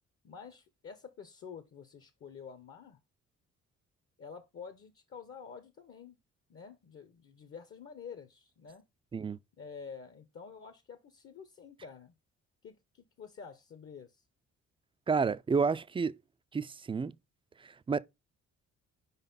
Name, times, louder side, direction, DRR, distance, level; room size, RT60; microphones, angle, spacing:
voice 1, 0.2-3.0 4.2-6.2 6.5-8.8 9.6-12.1 12.6-14.2, left 6 dB, 45° left, 1.0 m, -49 dB
voice 2, 15.1-16.2 16.5-17.1 17.6-18.0, right 5 dB, 20° right, 0.4 m, -30 dB
5.0 x 4.1 x 5.4 m
cardioid pair, 90°, 30 cm